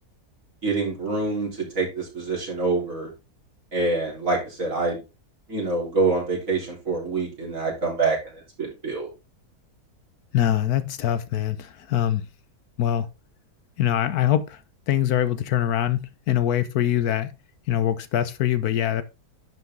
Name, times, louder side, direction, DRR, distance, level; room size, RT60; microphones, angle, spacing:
voice 1, 0.6-3.1 3.7-5.0 5.5-9.1, right 3 dB, 55° right, 4.3 m, -26 dB
voice 2, 10.3-12.2 12.8-13.1 13.8-14.6 14.9-17.3 17.7-19.0, left 11 dB, 75° left, 1.2 m, -23 dB
10.5 x 5.5 x 3.7 m
omnidirectional pair, 1.7 m